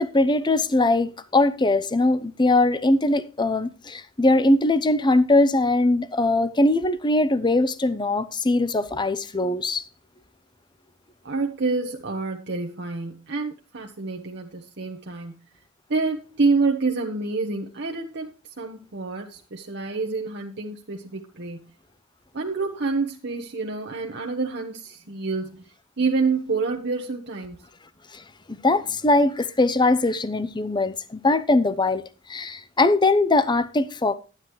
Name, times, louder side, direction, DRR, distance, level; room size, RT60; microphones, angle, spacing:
voice 1, 0.0-9.8 28.1-28.2 28.5-32.0 32.3-34.1, left 2 dB, 20° left, 0.7 m, -21 dB
voice 2, 11.2-15.4 15.9-21.7 22.3-27.6, right 3 dB, 55° right, 1.1 m, -28 dB
11.5 x 10.0 x 3.1 m
head